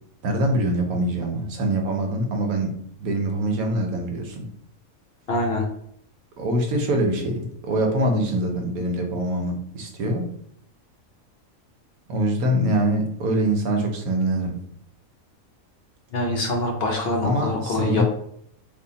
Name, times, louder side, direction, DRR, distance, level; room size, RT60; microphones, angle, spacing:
voice 1, 0.2-2.7 3.0-4.5 6.4-10.3 12.1-14.6 17.2-18.0, right 1 dB, 85° right, 3 dB, 1.2 m, -24 dB
voice 2, 5.3-5.7 16.1-18.0, left 2 dB, 60° left, 2 dB, 0.7 m, -24 dB
3.4 x 2.3 x 3.9 m, 0.68 s
omnidirectional pair, 1.5 m